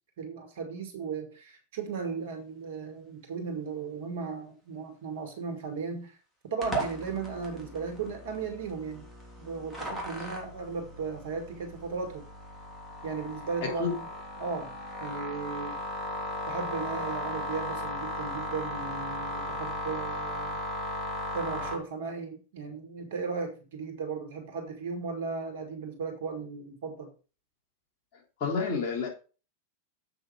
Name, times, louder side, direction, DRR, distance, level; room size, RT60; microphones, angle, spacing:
voice 1, 0.2-6.1 6.5-9.1 9.4-12.2 13.0-14.0 14.4-14.7 15.0-15.8 16.5-20.6 21.3-27.1, right 5 dB, 55° right, 6 dB, 2.3 m, -36 dB
sound 1, 6.6-21.7, equal, 5° left, 3.2 m, -36 dB
voice 2, 28.4-29.1, left 5 dB, 45° left, 0 dB, 3.5 m, -29 dB
7.8 x 6.2 x 4.9 m, 0.35 s
figure-of-eight pair, 90°, 0 cm